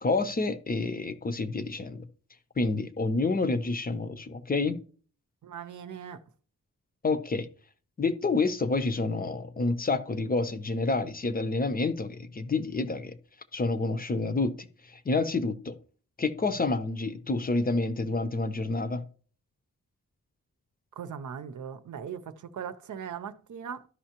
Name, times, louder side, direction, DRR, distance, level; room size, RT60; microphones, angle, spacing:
voice 1, 0.0-2.0 2.6-4.8 7.0-7.5 8.0-13.2 13.5-14.7 15.1-15.8 16.2-19.0, left 3 dB, 30° left, 0.6 m, -28 dB
voice 2, 5.4-6.2 21.0-23.9, right 7 dB, 70° right, 0.7 m, -39 dB
12.5 x 5.5 x 2.9 m
wide cardioid pair, 140°, 31 cm